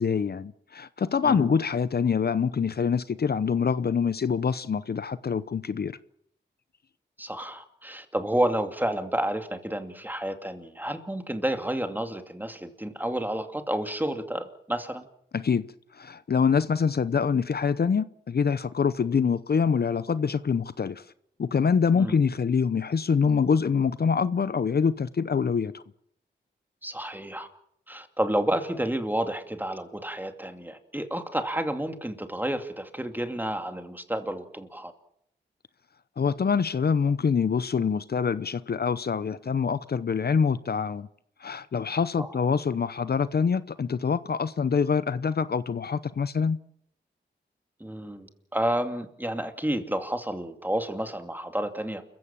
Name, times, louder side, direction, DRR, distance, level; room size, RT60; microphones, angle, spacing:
voice 1, 0.0-6.0 15.3-15.6 15.9-21.0 21.4-25.8 36.2-41.1 41.4-46.6, left 6 dB, 55° left, 0.8 m, -25 dB
voice 2, 1.2-1.5 7.2-15.1 22.0-22.2 26.8-27.5 27.9-34.9 42.2-42.3 47.8-52.0, right 1 dB, 10° right, 2.6 m, -30 dB
29.0 x 15.5 x 7.4 m
cardioid pair, 70°, 19 cm